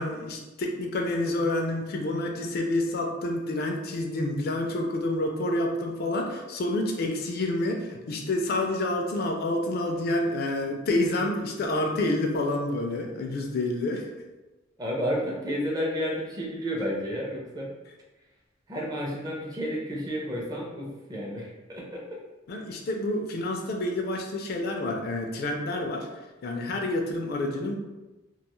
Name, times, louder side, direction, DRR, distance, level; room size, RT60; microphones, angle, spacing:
voice 1, 0.0-14.1 22.5-26.1 26.4-27.8, left 1 dB, 55° left, 2 dB, 0.4 m, -28 dB
voice 2, 14.8-17.7 18.7-22.2, equal, 20° right, -2 dB, 0.5 m, -31 dB
2.4 x 2.3 x 3.0 m, 1.1 s
head